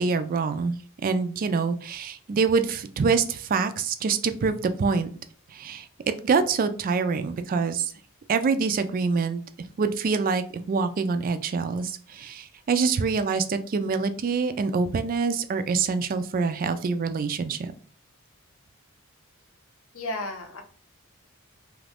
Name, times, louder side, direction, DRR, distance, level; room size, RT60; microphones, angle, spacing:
voice 1, 0.0-5.1 5.5-5.9 6.2-7.9 8.3-9.4 9.8-17.7, right 5 dB, 40° right, 10 dB, 0.3 m, -25 dB
voice 2, 19.9-20.6, left 1 dB, 65° left, 5 dB, 0.7 m, -33 dB
2.9 x 2.5 x 3.4 m, 0.42 s
head